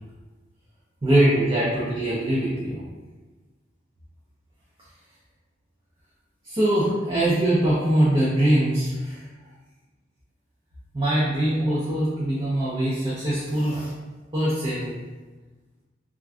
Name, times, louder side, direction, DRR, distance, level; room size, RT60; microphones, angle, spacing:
voice 1, 1.0-2.8 6.4-9.2 10.9-13.9 14.3-14.9, right 1 dB, 25° right, -8 dB, 0.5 m, -22 dB
2.4 x 2.2 x 3.4 m, 1.3 s
head